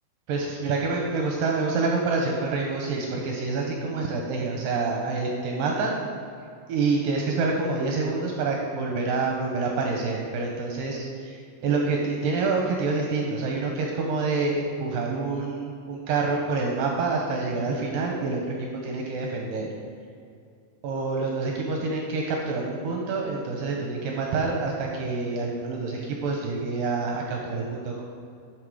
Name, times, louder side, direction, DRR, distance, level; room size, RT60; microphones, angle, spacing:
voice 1, 0.3-6.0 6.7-11.4 11.6-19.7 20.8-28.0, right 3 dB, 75° right, 0 dB, 2.2 m, -27 dB
11.5 x 6.0 x 4.8 m, 2.3 s
omnidirectional pair, 4.7 m